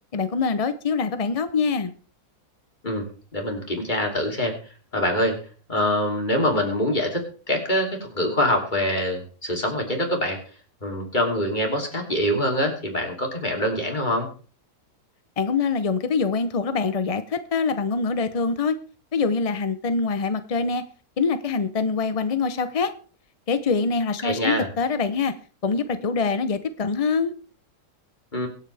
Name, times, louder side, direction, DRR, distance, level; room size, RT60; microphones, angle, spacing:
voice 1, 0.1-1.9 15.4-18.8 19.1-20.8 21.2-22.9 23.5-25.3 25.6-27.3, left 4 dB, 50° left, 11 dB, 0.4 m, -24 dB
voice 2, 3.3-4.5 4.9-5.4 5.7-10.4 10.8-14.3 24.2-24.7 28.3-28.5, left 1 dB, 30° left, 2 dB, 3.1 m, -24 dB
23.5 x 8.2 x 3.4 m, 0.37 s
omnidirectional pair, 1.7 m